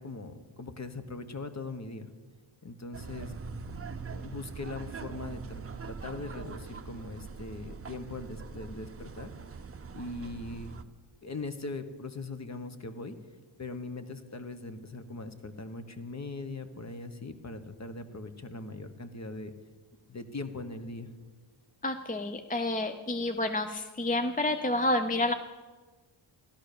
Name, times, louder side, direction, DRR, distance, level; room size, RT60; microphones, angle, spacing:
voice 1, 0.0-2.1 2.6-3.4 4.0-9.3 9.9-10.7 11.2-13.2 13.6-19.5 20.1-21.1, left 3 dB, 35° left, 9 dB, 1.2 m, -40 dB
sound 1, 2.9-10.8, right 5 dB, 30° right, 0.7 m, -42 dB
voice 2, 21.8-25.3, left 2 dB, 20° left, 8 dB, 0.5 m, -29 dB
15.0 x 12.0 x 6.7 m, 1.4 s
wide cardioid pair, 140°, 48 cm